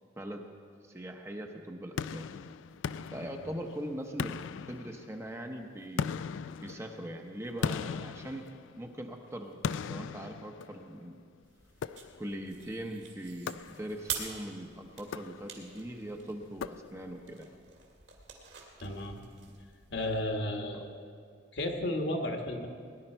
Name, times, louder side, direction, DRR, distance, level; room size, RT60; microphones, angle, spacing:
voice 1, 0.8-2.2 3.1-4.4 4.7-6.2 6.6-8.5 8.8-9.6 9.9-11.1 12.2-17.5 20.7-20.8, right 1 dB, 15° right, 3 dB, 0.7 m, -41 dB
sound 1, 2.0-3.8 4.2-5.4 6.0-9.0 9.6-11.1 11.8-12.5 13.5-14.2 15.0-15.8 16.6-17.3, left 6 dB, 85° left, 0.3 m, -38 dB
sound 2, 11.4-20.3, right 7 dB, 65° right, 2.0 m, -46 dB
voice 2, 18.8-19.2 19.9-21.1 21.5-22.7, left 1 dB, 65° left, 3 dB, 1.4 m, -33 dB
18.5 x 11.0 x 4.5 m, 2.2 s
head